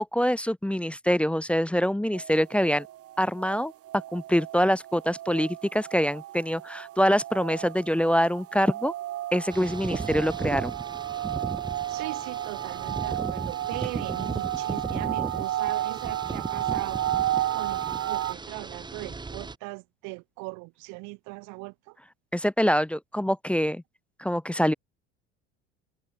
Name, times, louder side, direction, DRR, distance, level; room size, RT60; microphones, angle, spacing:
voice 1, 0.0-2.9 3.2-3.7 4.1-8.9 9.3-10.7 22.3-23.8 24.2-24.7, equal, 5° left, 0.5 m, -25 dB
sound 1, 2.1-18.3, right 13 dB, 45° right, 1.0 m, -33 dB
sound 2, 9.5-19.5, right 4 dB, 15° right, 1.0 m, -36 dB
voice 2, 11.9-17.0 17.5-22.0, right 29 dB, 60° right, 0.7 m, -39 dB
hypercardioid pair, 75°, 33 cm